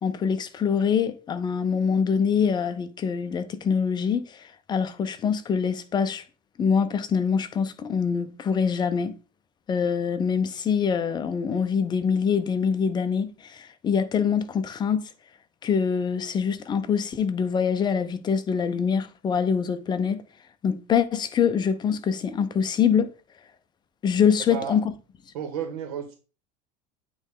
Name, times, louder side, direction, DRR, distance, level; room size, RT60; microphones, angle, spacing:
voice 1, 0.0-6.2 6.6-9.1 9.7-15.1 15.6-20.2 20.6-23.1 24.0-24.8, left 6 dB, 25° left, 0.6 m, -24 dB
voice 2, 25.3-26.1, right 8 dB, 85° right, 1.9 m, -32 dB
8.7 x 3.2 x 3.7 m
supercardioid pair, 135°, 19 cm